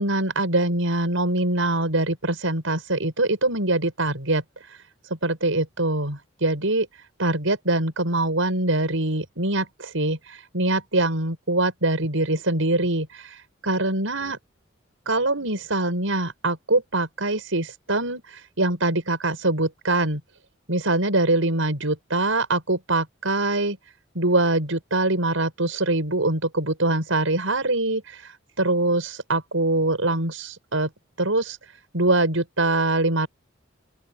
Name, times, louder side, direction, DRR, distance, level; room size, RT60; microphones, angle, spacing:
voice 1, 0.0-4.8 5.2-6.9 7.2-14.4 15.1-20.2 20.7-23.8 24.1-30.9 31.2-31.6 31.9-33.3, right 2 dB, 85° right, 6.2 m, -23 dB
open air
head